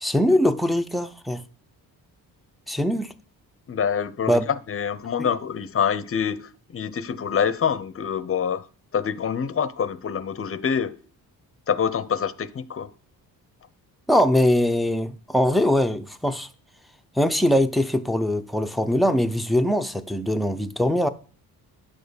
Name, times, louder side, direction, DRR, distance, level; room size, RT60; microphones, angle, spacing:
voice 1, 0.0-1.4 2.7-3.1 4.3-4.5 5.2-5.3 14.1-16.5 17.1-21.1, left 1 dB, ahead, 0.6 m, -22 dB
voice 2, 3.7-8.7 8.9-11.0 11.7-12.9, left 7 dB, 35° left, 0.7 m, -26 dB
10.0 x 6.4 x 7.0 m
cardioid pair, 125°, 37 cm